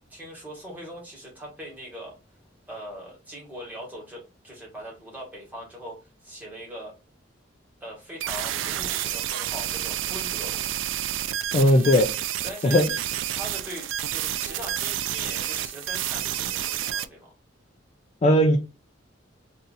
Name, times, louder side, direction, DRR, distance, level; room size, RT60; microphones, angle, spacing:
voice 1, 0.1-2.2 2.7-6.9 7.8-10.7 12.4-12.8 13.3-17.3, equal, 10° right, 1.5 m, -41 dB
sound 1, 8.2-17.1, right 11 dB, 70° right, 0.3 m, -30 dB
voice 2, 11.5-12.1 12.6-12.8 18.2-18.6, left 1 dB, 35° left, 0.4 m, -18 dB
2.7 x 2.5 x 4.0 m
head